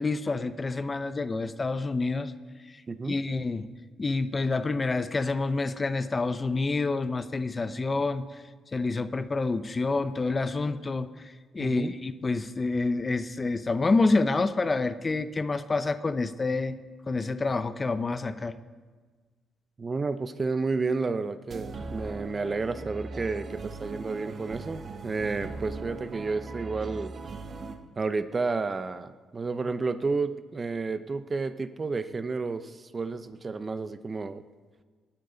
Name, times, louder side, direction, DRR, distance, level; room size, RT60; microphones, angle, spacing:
voice 1, 0.0-2.3 2.7-3.7 4.0-8.3 8.7-11.1 11.5-16.8 17.1-18.6, left 3 dB, 30° left, 12 dB, 0.6 m, -28 dB
voice 2, 2.9-3.2 11.6-11.9 19.8-27.2 28.0-34.4, right 4 dB, 30° right, 12 dB, 0.6 m, -31 dB
sound 1, 21.5-27.8, right 3 dB, 45° right, 1.2 m, -39 dB
19.0 x 10.5 x 3.9 m, 1.4 s
cardioid pair, 90°, 0 cm